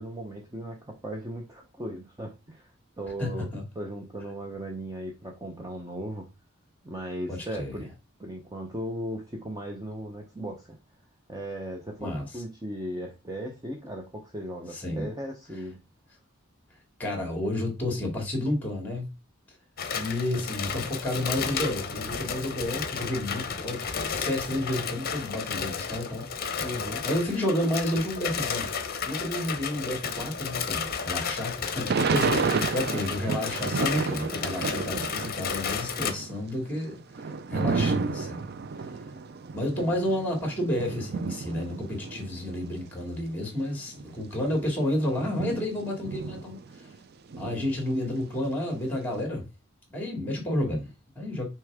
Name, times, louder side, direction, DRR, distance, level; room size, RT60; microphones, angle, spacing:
voice 1, 0.0-6.3 6.8-7.9 8.2-10.8 11.3-15.8 26.6-27.0 32.4-32.7, equal, 20° right, 0.8 m, -37 dB
voice 2, 3.2-3.6 7.3-7.8 12.0-12.3 14.7-15.1 17.0-19.1 19.9-26.3 27.0-28.7 29.1-37.0 37.5-38.5 39.5-46.6 47.4-49.5 49.9-51.4, left 1 dB, 10° left, 2.5 m, -30 dB
sound 1, 19.8-36.1, left 6 dB, 45° left, 0.8 m, -33 dB
Thunder / Rain, 31.9-35.5 35.8-42.9 43.5-43.6 43.8-46.9 47.3-49.0, right 4 dB, 50° right, 0.4 m, -31 dB
6.3 x 4.5 x 3.6 m
head